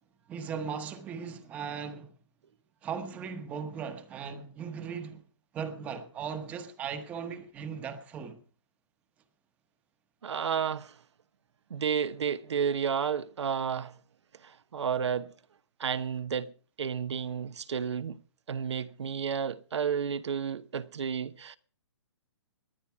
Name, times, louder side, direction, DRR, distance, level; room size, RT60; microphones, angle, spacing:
voice 1, 0.3-2.1 2.8-5.2 5.5-8.4, right 6 dB, 10° right, 1.0 m, -38 dB
voice 2, 10.2-11.0 11.7-13.9 14.4-15.3 15.8-16.5 16.8-18.2 18.5-21.6, right 7 dB, 75° right, 1.0 m, -31 dB
19.0 x 10.5 x 4.7 m
hypercardioid pair, 175°, 15 cm